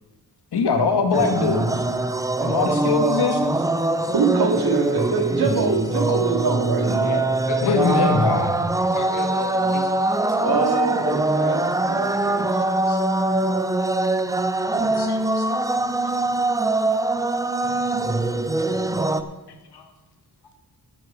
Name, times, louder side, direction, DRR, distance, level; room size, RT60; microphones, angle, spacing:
voice 1, 0.5-1.8 2.4-3.5 7.6-8.5 12.9-13.0 15.0-15.5 19.7-19.8, left 4 dB, 75° left, 5 dB, 1.6 m, -22 dB
sound 1, 1.1-19.2, right 2 dB, 10° right, 0.4 m, -23 dB
voice 2, 3.9-7.3 10.4-11.6 11.9-12.6, right 5 dB, 65° right, 2 dB, 2.2 m, -24 dB
voice 3, 7.5-8.3 8.9-9.9, left 4 dB, 45° left, 4 dB, 1.2 m, -32 dB
14.0 x 7.5 x 4.9 m, 1.2 s
wide cardioid pair, 165°, 40 cm